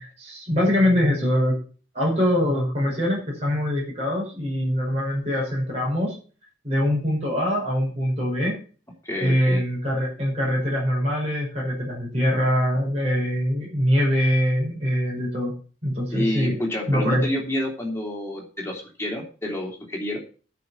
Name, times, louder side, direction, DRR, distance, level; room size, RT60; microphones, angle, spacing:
voice 1, 0.0-1.6 1.9-6.2 6.6-8.6 9.2-15.5 15.8-16.6 16.9-17.3, equal, 30° right, -5 dB, 5.9 m, -23 dB
voice 2, 9.0-9.6 16.1-20.2, left 1 dB, 15° left, 0 dB, 3.2 m, -28 dB
10.5 x 6.0 x 8.1 m, 0.39 s
head